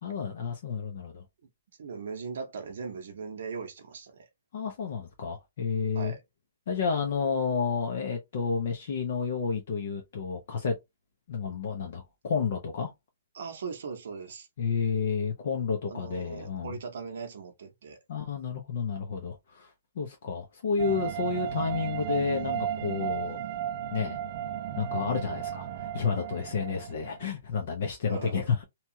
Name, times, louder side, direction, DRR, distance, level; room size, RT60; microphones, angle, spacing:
voice 1, 0.0-1.2 4.5-6.1 6.7-10.7 11.3-12.9 14.6-16.7 18.1-23.4 23.9-24.2 24.8-28.6, left 5 dB, 55° left, 0.7 m, -31 dB
voice 2, 1.8-4.3 5.9-6.2 13.3-14.5 15.9-18.0 28.1-28.4, right 5 dB, 65° right, 0.8 m, -39 dB
sound 1, 20.8-27.3, right 10 dB, 35° right, 0.3 m, -34 dB
2.9 x 2.3 x 2.7 m
hypercardioid pair, 165°, 0 cm